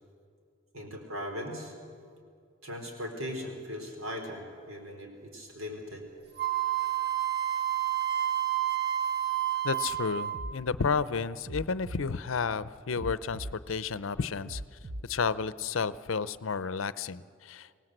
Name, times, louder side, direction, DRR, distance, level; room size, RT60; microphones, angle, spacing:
voice 1, 0.7-1.7 2.6-6.0, equal, 85° right, 3 dB, 4.0 m, -39 dB
Wind instrument woodwind instrument, 6.4-10.5, right 12 dB, 55° right, 1.7 m, -29 dB
voice 2, 9.6-14.6 15.0-17.8, left 5 dB, 70° left, 16 dB, 0.6 m, -31 dB
sound 1, 10.3-10.6 11.5-12.1 13.0-13.6 14.5-15.1, right 1 dB, 35° right, 0.6 m, -38 dB
25.5 x 18.5 x 7.9 m, 2.3 s
head